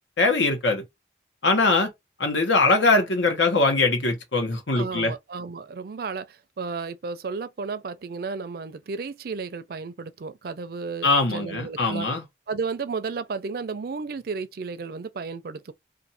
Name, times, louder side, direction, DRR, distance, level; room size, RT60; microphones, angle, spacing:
voice 1, 0.2-0.8 1.4-1.9 2.2-5.1 11.0-12.2, left 3 dB, 90° left, 1.1 m, -21 dB
voice 2, 4.7-12.1 12.5-15.7, right 4 dB, 55° right, 0.4 m, -33 dB
2.6 x 2.5 x 4.1 m
head